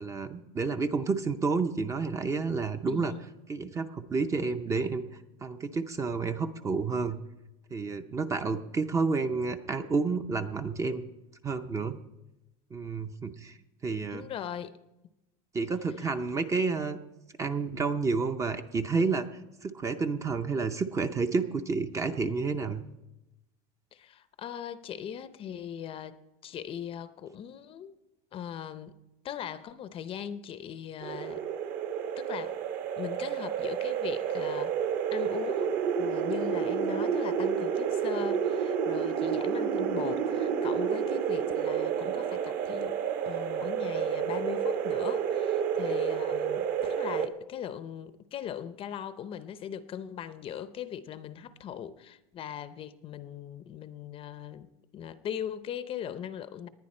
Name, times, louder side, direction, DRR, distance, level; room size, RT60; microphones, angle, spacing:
voice 1, 0.0-3.1 3.5-5.0 5.4-7.2 7.7-11.0 11.4-12.0 12.7-13.6 13.8-14.3 15.5-17.0 17.4-19.3 19.6-22.8, right 4 dB, 15° right, 0.5 m, -30 dB
voice 2, 2.9-3.3 14.1-14.8 23.9-27.9 28.3-29.0 29.2-31.4 32.2-32.6 33.0-34.8 35.1-43.0 43.3-54.7 54.9-56.7, left 9 dB, 30° left, 0.6 m, -39 dB
sound 1, 31.0-47.3, right 7 dB, 50° right, 1.3 m, -30 dB
19.5 x 10.5 x 4.3 m
supercardioid pair, 150°, 19 cm